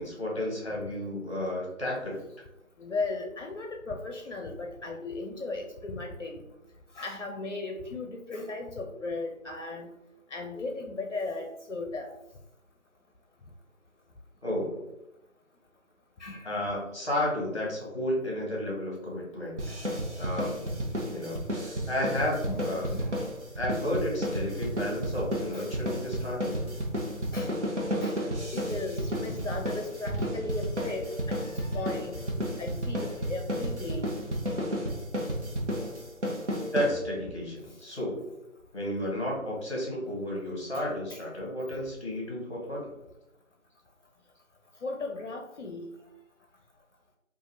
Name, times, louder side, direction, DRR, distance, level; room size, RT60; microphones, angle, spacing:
voice 1, 0.0-2.2 14.4-14.9 16.4-19.6 20.1-20.6 21.1-22.9 23.6-26.5 36.6-38.3 38.7-42.9, left 1 dB, 20° left, -3 dB, 1.0 m, -32 dB
voice 2, 2.8-6.5 6.9-9.9 10.3-12.1 16.2-16.7 22.5-23.3 24.6-24.8 25.5-25.7 27.3-27.5 28.0-28.2 28.5-32.2 32.6-34.1 40.7-40.8 41.1-41.2 44.8-45.9, left 3 dB, 60° left, 4 dB, 0.6 m, -36 dB
sound 1, 19.6-37.4, equal, 55° right, 0.9 m, -32 dB
4.8 x 2.5 x 2.7 m, 0.88 s
figure-of-eight pair, 170°, 41 cm